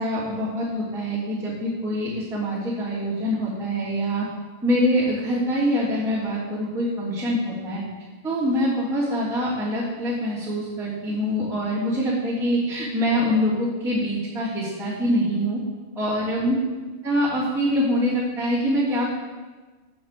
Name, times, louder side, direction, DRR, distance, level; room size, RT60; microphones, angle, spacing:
voice 1, 0.0-4.3 4.6-7.8 8.2-15.6 16.0-16.6 17.0-19.1, equal, ahead, -9 dB, 1.9 m, -24 dB
8.0 x 7.4 x 6.8 m, 1.3 s
omnidirectional pair, 4.3 m